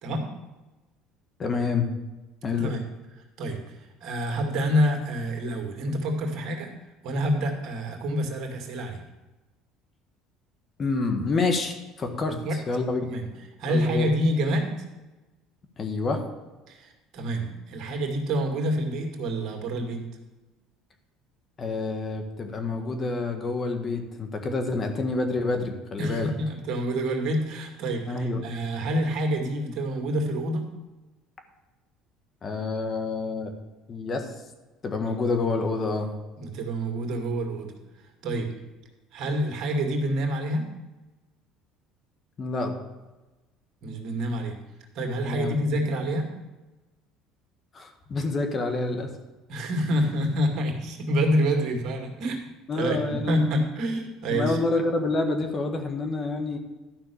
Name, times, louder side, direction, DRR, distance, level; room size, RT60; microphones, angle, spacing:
voice 1, 1.4-1.9 2.4-2.7 10.8-13.1 13.7-14.1 15.8-16.2 21.6-26.3 28.1-28.4 32.4-33.5 33.9-34.3 34.8-36.1 42.4-42.7 45.3-45.8 47.7-49.1 52.7-53.6 54.3-56.6, left 3 dB, 35° left, 5 dB, 1.6 m, -28 dB
voice 2, 3.4-6.7 7.0-9.0 12.3-12.6 13.0-13.3 13.6-14.8 16.7-20.0 26.0-30.7 36.4-37.7 38.2-38.5 39.1-40.7 43.8-44.6 45.0-46.3 49.5-52.5 52.7-54.6, equal, 60° right, 3 dB, 2.2 m, -27 dB
12.0 x 5.7 x 6.9 m, 1.1 s
supercardioid pair, 90°, 0 cm